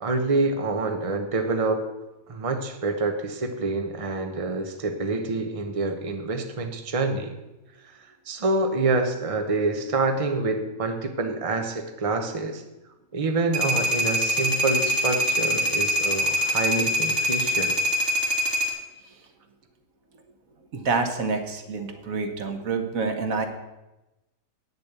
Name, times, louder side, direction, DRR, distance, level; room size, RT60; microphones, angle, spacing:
voice 1, 0.0-1.8 2.3-7.4 8.3-12.6 13.1-17.7, right 3 dB, 30° right, 5 dB, 1.0 m, -26 dB
sound 1, 13.5-18.7, equal, 60° right, 2.2 m, -24 dB
voice 2, 20.7-23.5, right 4 dB, 85° right, 6 dB, 1.6 m, -27 dB
8.6 x 6.9 x 8.2 m, 1.0 s
omnidirectional pair, 1.4 m